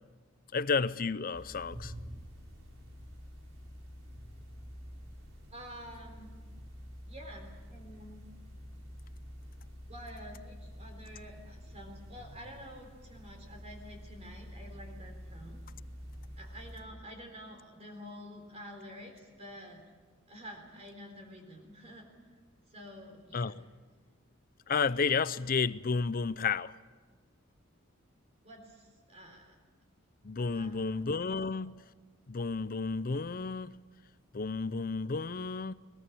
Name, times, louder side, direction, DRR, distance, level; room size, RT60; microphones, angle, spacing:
voice 1, 0.5-1.9 23.3-23.6 24.7-26.7 30.2-31.8 32.3-33.8 34.3-35.7, left 4 dB, 45° left, 0.6 m, -31 dB
sound 1, 1.3-16.8, equal, 85° right, 5.3 m, -48 dB
voice 2, 5.5-6.3 7.1-8.2 9.9-15.6 16.4-19.9 20.3-22.1 22.7-23.6 28.4-29.5 30.5-31.0 31.3-31.5, equal, 30° right, 3.8 m, -49 dB
22.0 x 20.0 x 8.5 m
head